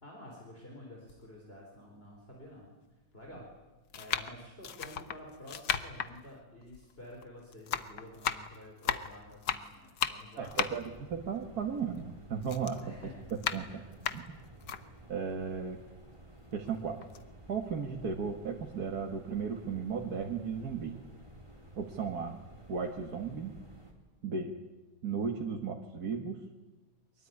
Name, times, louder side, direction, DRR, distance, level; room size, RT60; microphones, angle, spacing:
voice 1, 0.0-2.7 3.1-3.5 3.9-10.5 12.8-13.8, left 1 dB, 30° left, -1 dB, 4.6 m, -50 dB
sound 1, 1.1-1.2 2.1-2.2 3.1-3.4 3.9-7.3 7.5-12.1 12.4-14.8 15.3-15.4 15.7-16.7 17.0-17.2, left 8 dB, 70° left, 1.7 m, -36 dB
sound 2, 10.4-23.9, right 1 dB, 15° right, 4.1 m, -53 dB
voice 2, 10.4-12.9 13.5-13.7 14.1-14.2 15.1-15.8 16.5-17.0 17.5-21.0 21.8-22.4 22.7-23.5 24.2-24.5 25.0-26.4, right 6 dB, 55° right, 2 dB, 2.1 m, -35 dB
23.5 x 22.5 x 9.6 m, 1.2 s
omnidirectional pair, 2.0 m